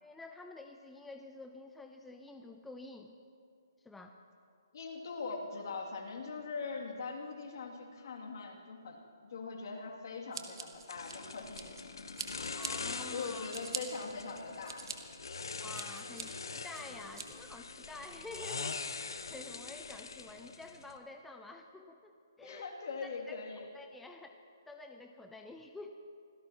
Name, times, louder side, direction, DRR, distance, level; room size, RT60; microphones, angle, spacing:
voice 1, 0.0-3.1 3.8-4.2 12.6-13.5 15.6-22.1 22.4-22.7 23.0-23.4 23.7-24.4 24.7-25.9, left 2 dB, 5° left, 4 dB, 0.5 m, -49 dB
voice 2, 4.7-9.0 9.2-11.8 13.1-14.9 22.4-23.7, left 4 dB, 60° left, 0 dB, 2.6 m, -41 dB
Scissors, 10.3-11.8 12.2-12.7 13.2-13.8 14.4-15.0 15.4-16.2 16.7-17.3, right 5 dB, 80° right, 1.7 m, -42 dB
sound 1, 10.9-21.0, left 4 dB, 80° left, 1.0 m, -43 dB
26.0 x 17.0 x 3.0 m, 2.5 s
hypercardioid pair, 155°, 2 cm